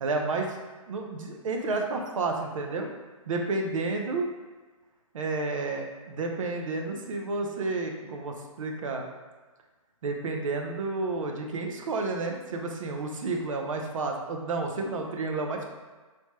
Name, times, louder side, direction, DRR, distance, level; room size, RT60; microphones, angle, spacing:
voice 1, 0.0-0.6 0.9-2.9 3.3-4.3 5.1-9.0 10.0-15.7, right 3 dB, 65° right, 2 dB, 0.5 m, -31 dB
3.3 x 2.1 x 2.9 m, 1.3 s
hypercardioid pair, 150°, 18 cm